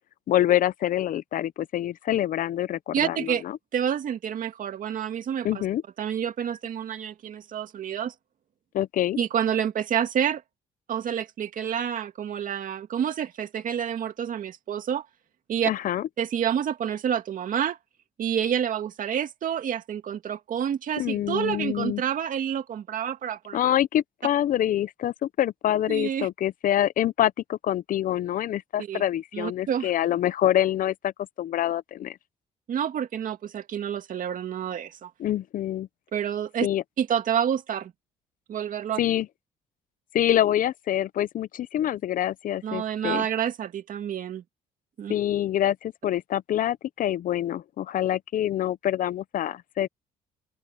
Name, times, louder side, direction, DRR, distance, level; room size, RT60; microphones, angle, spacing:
voice 1, 0.3-3.6 5.4-5.8 8.7-9.2 15.7-16.1 21.0-22.0 23.5-31.1 31.4-32.2 35.2-35.9 36.6-36.8 39.0-39.3 40.1-43.3 45.1-49.9, left 12 dB, 60° left, 0.6 m, -26 dB
voice 2, 2.9-3.4 3.7-5.6 6.0-8.1 9.2-10.4 10.9-15.1 15.5-15.7 16.2-17.8 18.2-23.6 25.9-26.3 28.8-29.0 29.3-29.9 32.7-35.1 36.1-36.7 37.0-37.9 38.5-39.0 42.6-44.4 45.0-45.1, right 9 dB, 60° right, 2.3 m, -28 dB
open air
supercardioid pair, 75°, 16 cm